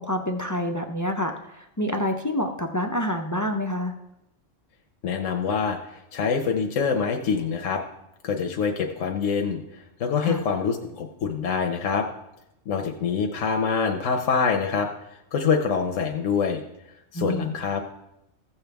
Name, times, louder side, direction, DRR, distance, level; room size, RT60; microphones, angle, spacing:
voice 1, 0.0-3.9 10.2-10.4 17.1-17.5, equal, 25° left, 5 dB, 0.4 m, -27 dB
voice 2, 5.0-7.8 8.2-9.6 10.0-12.1 12.7-14.9 15.3-16.6 17.1-17.8, left 6 dB, 80° left, 3 dB, 1.2 m, -25 dB
15.5 x 7.1 x 3.4 m, 0.86 s
omnidirectional pair, 1.3 m